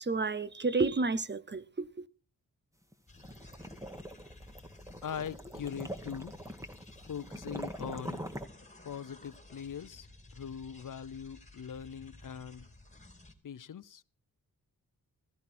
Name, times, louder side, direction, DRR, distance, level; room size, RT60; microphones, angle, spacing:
voice 1, 0.0-2.1, right 3 dB, 30° right, 0.8 m, -31 dB
sound 1, 2.9-8.5, equal, 10° right, 1.9 m, -43 dB
sound 2, 3.1-13.3, left 2 dB, 20° left, 2.8 m, -55 dB
voice 2, 5.0-6.3 7.1-8.3 8.8-10.1 10.3-12.7 13.4-14.0, left 7 dB, 60° left, 0.7 m, -41 dB
16.0 x 15.5 x 4.3 m
wide cardioid pair, 80°, 36 cm